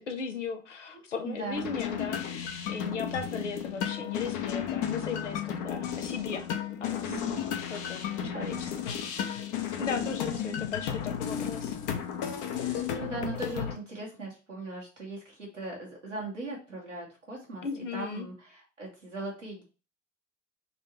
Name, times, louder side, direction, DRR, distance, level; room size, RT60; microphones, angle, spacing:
voice 1, 0.0-6.5 6.8-7.2 7.7-9.4 9.8-11.8 17.6-18.3, left 5 dB, 90° left, 0.6 m, -37 dB
voice 2, 0.9-1.7 7.0-7.5 8.2-8.6 9.9-10.1 12.4-19.6, right 2 dB, 90° right, 1.5 m, -39 dB
sound 1, 1.5-13.8, left 9 dB, 55° left, 0.8 m, -33 dB
4.1 x 2.8 x 4.3 m
figure-of-eight pair, 55°, 36 cm